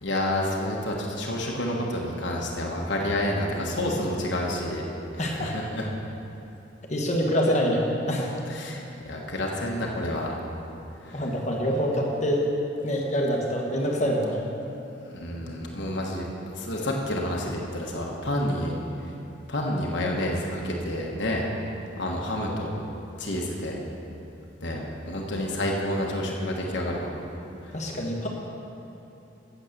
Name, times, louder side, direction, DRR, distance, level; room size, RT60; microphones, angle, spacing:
voice 1, 0.0-4.8 5.1-5.9 8.5-10.4 11.0-11.2 15.1-16.2 16.5-18.8 19.0-19.1 19.5-21.5 22.0-22.8 23.2-23.8 24.6-27.1, left 1 dB, 65° left, -1 dB, 1.2 m, -29 dB
voice 2, 5.2-5.5 6.9-8.5 11.1-12.4 12.8-14.4 14.9-15.3 27.7-28.3, equal, 35° left, -1 dB, 1.3 m, -26 dB
8.6 x 8.1 x 6.5 m, 2.9 s
head